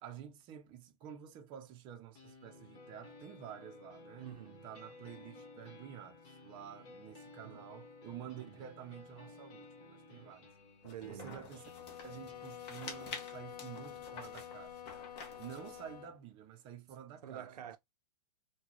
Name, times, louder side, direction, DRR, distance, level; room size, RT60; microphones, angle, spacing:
voice 1, 0.0-10.5 11.1-11.7 12.0-14.9 15.4-17.5, right 10 dB, 25° right, 0.6 m, -50 dB
sound 1, 2.1-16.1, left 3 dB, 50° left, 1.5 m, -57 dB
voice 2, 4.2-4.7 7.4-7.6 8.4-8.6 10.8-11.5 17.2-17.8, right 10 dB, 80° right, 0.6 m, -48 dB
sound 2, 10.8-15.9, left 4 dB, 30° left, 0.9 m, -50 dB
sound 3, 11.5-16.2, left 10 dB, 85° left, 0.5 m, -49 dB
3.6 x 2.2 x 3.0 m
hypercardioid pair, 145°, 20 cm